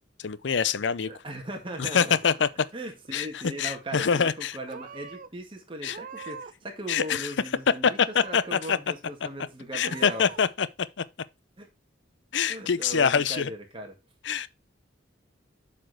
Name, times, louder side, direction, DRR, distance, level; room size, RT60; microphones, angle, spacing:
voice 1, 0.2-1.1 1.8-2.7 3.1-3.3 3.6-4.6 5.8-6.0 6.9-7.3 7.8-8.8 9.7-10.7 11.0-11.1 12.3-13.5 14.2-14.5, left 6 dB, 70° left, 0.5 m, -25 dB
voice 2, 1.1-2.2 2.7-8.0 8.2-10.3 11.6-11.7 12.5-13.9, right 1 dB, 30° right, 1.7 m, -38 dB
Purr / Meow, 2.1-2.7 3.0-3.6 4.3-4.4 4.7-5.3 5.8-6.7 6.9-7.7 8.1-8.7 9.1-9.2 9.7-10.4, right 5 dB, 45° right, 0.5 m, -45 dB
7.7 x 4.4 x 4.6 m
head